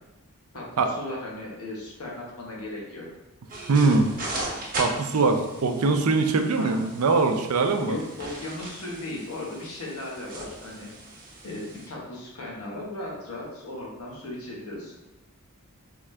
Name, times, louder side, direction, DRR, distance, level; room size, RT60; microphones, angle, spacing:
voice 1, 0.5-3.1 6.5-6.8 7.9-10.9 11.4-14.9, left 1 dB, 80° left, -3 dB, 1.2 m, -36 dB
sound 1, 3.5-11.9, right 2 dB, 40° right, 0.9 m, -38 dB
voice 2, 3.7-4.1 4.8-8.0, right 3 dB, 80° right, 6 dB, 0.5 m, -22 dB
3.6 x 3.5 x 3.2 m, 1.0 s
head